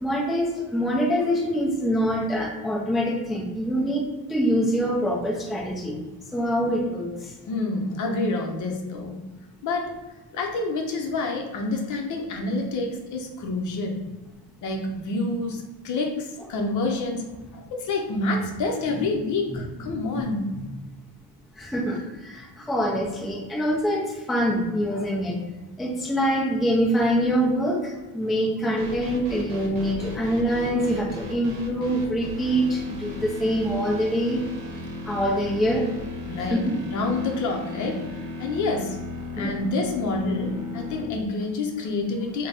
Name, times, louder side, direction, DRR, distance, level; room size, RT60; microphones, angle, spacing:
voice 1, 0.0-6.0 6.3-7.1 20.5-20.7 21.6-24.0 24.3-25.4 25.8-27.8 28.1-34.4 35.1-35.9 36.5-36.8 39.4-39.5, equal, ahead, -3 dB, 0.4 m, -24 dB
voice 2, 7.4-9.2 9.6-10.0 10.3-14.0 14.6-17.3 17.5-20.6 30.2-30.3 36.3-36.6 36.9-39.0 39.4-42.5, left 2 dB, 50° left, 2 dB, 0.7 m, -28 dB
sound 1, 28.8-41.0, left 2 dB, 65° right, 0.8 m, -36 dB
3.9 x 2.2 x 3.3 m, 1.2 s
cardioid pair, 155°, 38 cm